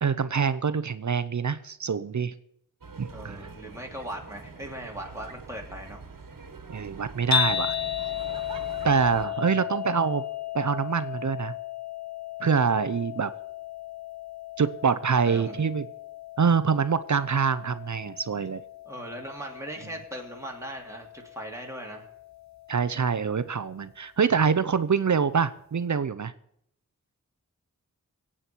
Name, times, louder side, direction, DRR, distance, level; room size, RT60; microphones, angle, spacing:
voice 1, 0.0-2.3 3.0-3.4 6.7-7.8 8.8-10.2 10.5-11.5 12.4-13.3 14.6-15.9 16.4-18.6 22.7-26.3, right 6 dB, 60° right, 14 dB, 0.7 m, -25 dB
sound 1, 2.8-9.3, right 4 dB, 80° right, 1.6 m, -44 dB
voice 2, 3.1-6.0 9.4-9.6 15.2-15.5 18.8-22.1, right 1 dB, 10° right, 0 dB, 2.9 m, -39 dB
sound 2, 7.3-23.5, left 10 dB, 60° left, 0.9 m, -35 dB
22.5 x 8.8 x 4.5 m, 0.71 s
wide cardioid pair, 65°, 32 cm